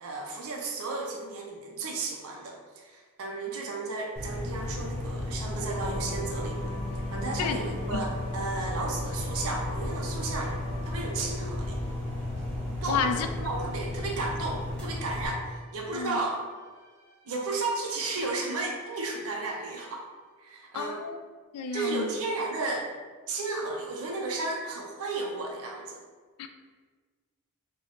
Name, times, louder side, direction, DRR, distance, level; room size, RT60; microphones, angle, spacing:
voice 1, 0.0-6.7 7.1-10.5 10.9-11.8 12.8-13.0 13.4-16.4 17.2-20.1 20.4-21.0 21.7-22.9 23.3-26.0, right 3 dB, 70° right, -1 dB, 0.5 m, -33 dB
sound 1, 4.1-15.3, left 1 dB, 5° left, 0.8 m, -34 dB
sound 2, 5.7-20.2, equal, 15° right, 1.4 m, -47 dB
voice 2, 12.9-13.3 15.9-16.2 20.7-21.2 21.5-22.0 26.4-26.5, left 6 dB, 90° left, 8 dB, 0.3 m, -30 dB
3.2 x 2.0 x 3.8 m, 1.5 s
head